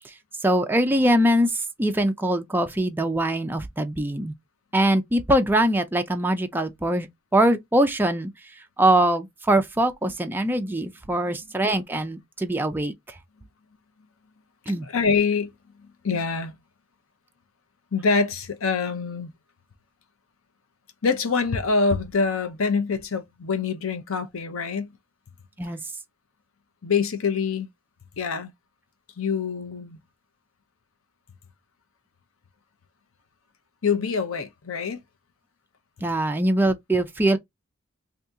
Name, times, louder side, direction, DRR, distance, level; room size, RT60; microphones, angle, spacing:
voice 1, 0.4-1.5 1.8-4.3 4.7-7.1 7.3-8.3 8.8-12.9 14.7-14.9 25.6-25.8 36.0-37.4, right 1 dB, 10° right, 0.4 m, -22 dB
voice 2, 14.8-15.5 15.8-16.6 17.9-19.3 21.0-24.9 26.8-27.7 28.2-28.5 29.2-30.0 33.8-35.0, left 5 dB, 85° left, 0.7 m, -25 dB
2.7 x 2.7 x 3.5 m
head